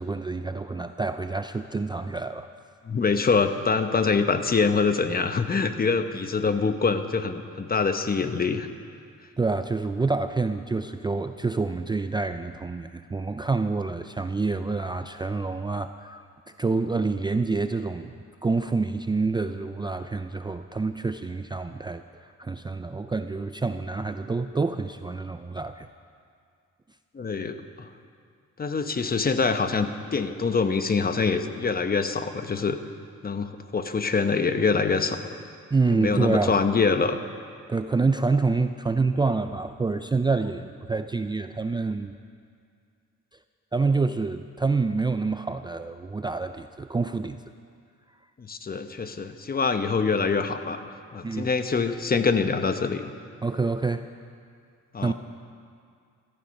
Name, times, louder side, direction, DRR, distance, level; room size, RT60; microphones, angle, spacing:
voice 1, 0.0-2.5 9.4-16.2 16.6-18.1 18.4-25.9 35.7-36.6 37.7-42.1 43.7-47.4 51.2-51.5 53.4-54.1 55.0-55.1, right 3 dB, 15° right, 9 dB, 0.5 m, -27 dB
voice 2, 2.8-8.7 27.1-27.9 28.6-32.8 33.2-35.4 35.9-37.2 48.5-53.1 54.9-55.1, left 4 dB, 30° left, 8 dB, 1.0 m, -25 dB
17.0 x 14.5 x 5.4 m, 2.2 s
cardioid pair, 90°, 30 cm